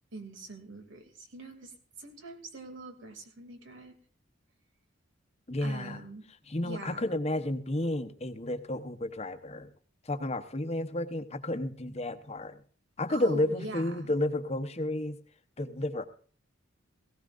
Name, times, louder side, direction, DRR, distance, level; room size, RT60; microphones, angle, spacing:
voice 1, 0.1-3.9 5.6-6.2 6.6-7.0 13.1-14.1, right 2 dB, 75° right, 5 dB, 2.6 m, -43 dB
voice 2, 5.5-6.0 6.5-9.7 10.0-12.6 13.0-15.2 15.6-16.0, left 1 dB, 35° left, 8 dB, 0.9 m, -31 dB
18.5 x 16.5 x 2.5 m, 0.41 s
head